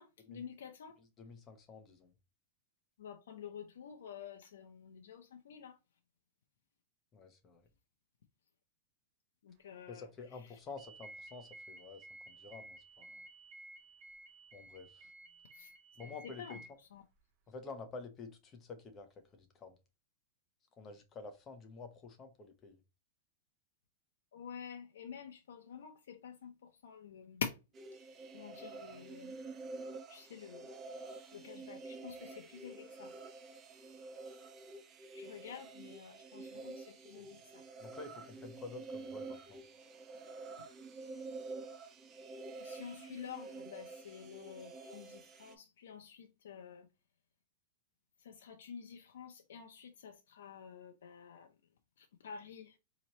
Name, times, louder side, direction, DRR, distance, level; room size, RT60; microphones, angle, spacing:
voice 1, 0.0-1.0 3.0-5.8 9.4-10.6 15.5-15.7 16.0-17.0 24.3-27.6 28.3-29.4 30.1-33.1 35.1-37.6 40.6-40.7 42.6-46.9 48.2-51.5 52.0-52.8, left 7 dB, 85° left, 0.6 m, -49 dB
voice 2, 1.0-2.1 7.1-7.7 9.9-13.3 14.5-15.1 16.0-16.8 17.5-19.8 20.8-22.8 37.8-39.6, left 4 dB, 20° left, 0.8 m, -50 dB
sound 1, 10.8-16.7, right 2 dB, 35° right, 0.8 m, -54 dB
sound 2, 27.7-45.5, right 3 dB, 20° right, 0.5 m, -48 dB
4.1 x 2.9 x 2.9 m
supercardioid pair, 165°, 0 cm